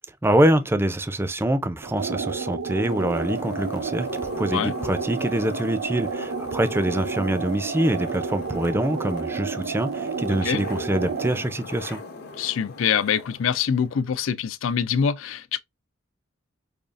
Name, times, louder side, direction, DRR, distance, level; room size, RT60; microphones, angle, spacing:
voice 1, 0.2-4.1 4.4-12.0, right 1 dB, 10° right, 0.4 m, -24 dB
sound 1, 1.8-11.4, right 5 dB, 75° right, 0.4 m, -31 dB
sound 2, 2.7-14.2, left 3 dB, 55° left, 0.8 m, -40 dB
voice 2, 12.4-15.6, left 7 dB, 80° left, 0.4 m, -24 dB
5.2 x 2.3 x 2.4 m
head